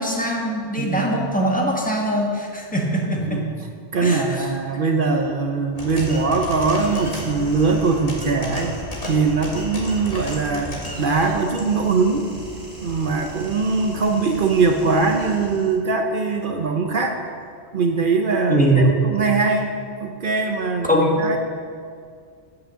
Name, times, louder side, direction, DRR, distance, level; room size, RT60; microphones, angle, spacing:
voice 1, 0.0-3.4 4.0-4.5 18.5-18.8 20.9-21.1, right 1 dB, 5° left, -1 dB, 1.4 m, -22 dB
voice 2, 0.8-1.3 3.3-3.4 3.9-8.7 9.1-10.7 11.0-12.3 12.8-17.2 17.7-19.7 20.0-20.9 21.2-21.4, right 4 dB, 55° right, 4 dB, 0.8 m, -21 dB
sound 1, 5.7-15.7, equal, 35° left, 1.7 m, -34 dB
8.9 x 6.1 x 7.3 m, 2.1 s
omnidirectional pair, 1.2 m